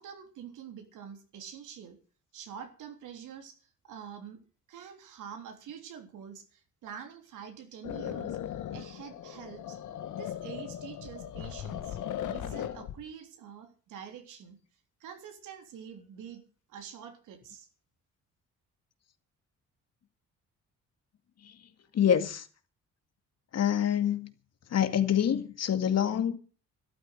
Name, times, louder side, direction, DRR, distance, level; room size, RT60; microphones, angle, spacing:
voice 1, 0.0-2.0 2.3-3.6 3.8-4.4 4.7-8.4 8.7-9.8 10.2-12.0 12.2-14.6 15.0-16.4 16.7-17.7, right 8 dB, 85° right, 3.5 m, -46 dB
sound 1, 7.8-13.0, left 10 dB, 80° left, 1.6 m, -38 dB
voice 2, 21.9-22.5 23.5-24.3 24.7-26.4, left 9 dB, 60° left, 2.2 m, -26 dB
13.0 x 12.0 x 6.6 m
cardioid pair, 90°, 30 cm